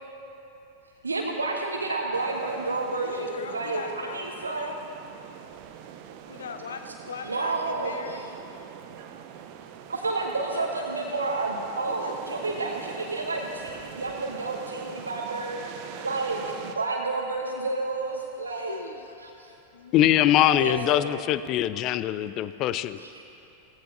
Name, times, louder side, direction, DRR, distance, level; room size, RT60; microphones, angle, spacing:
voice 1, 1.0-4.8 7.2-8.2 9.9-15.6 16.0-18.8 19.2-19.6 20.6-21.1 23.0-23.2, right 3 dB, 75° right, 0 dB, 1.0 m, -30 dB
sound 1, 2.1-16.8, right 9 dB, 45° right, 0.6 m, -43 dB
voice 2, 2.9-4.8 6.3-8.4 10.5-11.5 12.0-12.1 18.4-20.2, left 5 dB, 65° left, 8 dB, 0.8 m, -41 dB
voice 3, 19.9-23.2, left 12 dB, 35° left, 14 dB, 0.4 m, -23 dB
17.5 x 15.0 x 2.7 m, 2.9 s
figure-of-eight pair, 90°, 0 cm